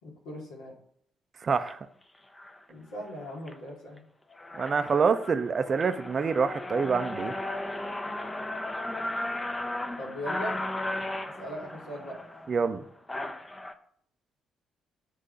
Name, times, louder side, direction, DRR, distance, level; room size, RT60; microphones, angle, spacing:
voice 1, 0.0-0.7 2.7-4.1 10.0-10.6 11.4-12.2, equal, 70° left, -4 dB, 2.5 m, -39 dB
voice 2, 1.4-1.8 4.6-7.3 12.5-12.8, right 5 dB, 45° right, 10 dB, 0.7 m, -26 dB
sound 1, 1.5-1.7 2.4-2.6 3.1-3.5 4.0-4.1 4.3-13.7, left 1 dB, 20° left, 0.8 m, -35 dB
8.8 x 3.6 x 5.2 m, 0.66 s
figure-of-eight pair, 45°, 0 cm